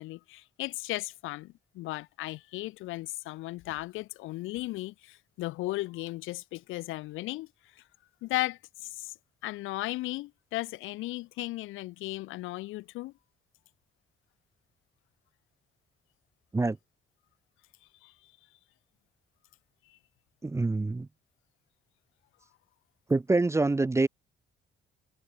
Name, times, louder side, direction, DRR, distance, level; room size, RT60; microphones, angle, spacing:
voice 1, 0.0-7.5 8.2-9.1 9.4-13.1 18.0-18.1, left 18 dB, 90° left, 0.5 m, -36 dB
voice 2, 20.4-21.1 23.1-24.1, right 3 dB, 15° right, 0.5 m, -25 dB
cardioid pair, 90°, 20 cm